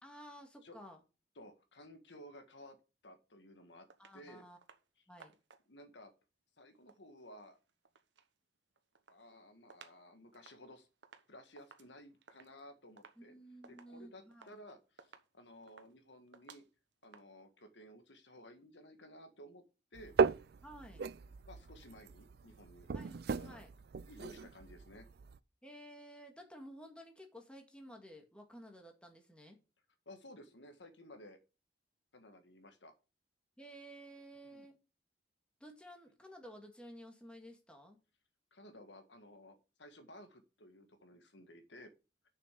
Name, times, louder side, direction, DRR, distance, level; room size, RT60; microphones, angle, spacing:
voice 1, 0.0-1.0 4.0-4.6 5.1-5.3 13.2-14.5 20.6-21.0 22.9-23.7 25.6-29.6 33.6-34.8 35.6-38.0, equal, 5° left, 3 dB, 2.0 m, -53 dB
voice 2, 1.3-2.8 3.0-3.9 4.1-4.4 5.7-6.1 6.6-7.6 9.1-10.9 11.3-13.3 13.7-16.6 17.0-19.6 19.9-20.1 21.5-22.9 23.3-23.6 24.1-25.1 30.0-31.4 32.1-32.9 34.5-34.7 38.5-41.9, left 1 dB, 75° left, 7 dB, 1.7 m, -55 dB
sound 1, 3.9-4.2 4.6-4.9 5.2-5.8 6.7-8.3 8.7-10.0 10.3-17.2, right 5 dB, 75° right, 1.1 m, -61 dB
sound 2, 19.9-25.4, right 5 dB, 60° right, 0.4 m, -37 dB
6.8 x 6.6 x 6.7 m, 0.31 s
head